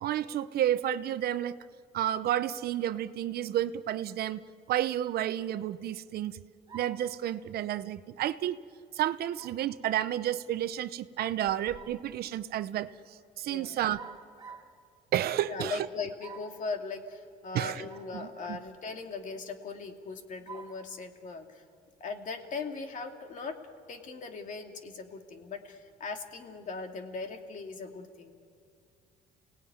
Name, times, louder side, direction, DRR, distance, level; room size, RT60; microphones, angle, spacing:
voice 1, 0.0-1.6 1.9-4.4 4.7-6.4 6.7-8.6 8.9-14.0 15.1-15.9 17.5-17.9 18.1-18.6, right 12 dB, 65° right, 13 dB, 0.9 m, -31 dB
sound 1, 6.7-7.1 9.4-9.7 11.5-12.1 13.9-14.7 16.2-16.6 17.9-18.1 18.7-18.8 20.5-20.8, right 6 dB, 25° right, 3.8 m, -47 dB
voice 2, 13.5-13.8 15.4-21.6 22.0-23.6 23.9-28.3, left 4 dB, 50° left, 4 dB, 2.7 m, -39 dB
29.5 x 18.5 x 9.4 m, 2.4 s
cardioid pair, 110°, 17 cm